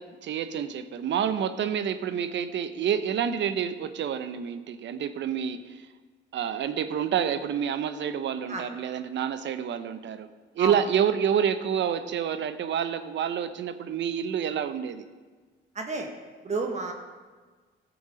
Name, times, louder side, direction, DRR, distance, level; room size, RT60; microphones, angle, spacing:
voice 1, 0.0-5.8 6.3-10.3 10.5-15.0, right 8 dB, 65° right, 11 dB, 0.8 m, -28 dB
voice 2, 15.7-16.1 16.4-16.9, right 3 dB, 35° right, 2 dB, 1.5 m, -30 dB
14.5 x 7.0 x 5.0 m, 1.4 s
cardioid pair, 90°, 20 cm